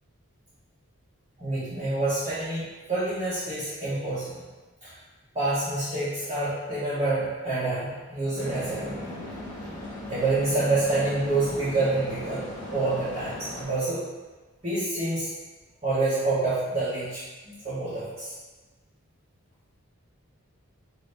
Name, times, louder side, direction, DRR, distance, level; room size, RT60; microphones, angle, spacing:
voice 1, 1.4-4.4 4.8-4.9 5.3-9.2 10.1-12.5 12.7-14.0 14.6-15.3 15.8-18.3, right 2 dB, 30° right, -12 dB, 0.9 m, -27 dB
sound 1, 8.3-13.6, left 1 dB, 20° left, 1.1 m, -38 dB
4.0 x 2.7 x 3.3 m, 1.2 s
head